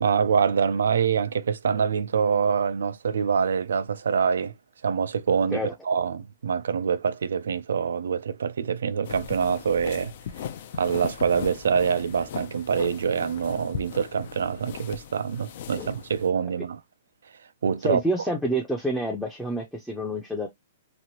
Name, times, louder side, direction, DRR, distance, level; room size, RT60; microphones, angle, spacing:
voice 1, 0.0-4.5 4.8-10.1 10.7-16.8 17.6-18.0, right 6 dB, 90° right, 0.3 m, -25 dB
sound 1, 9.1-16.3, left 8 dB, 55° left, 0.4 m, -38 dB
voice 2, 17.8-20.5, right 1 dB, ahead, 0.5 m, -28 dB
3.0 x 2.5 x 2.8 m
hypercardioid pair, 150°, 0 cm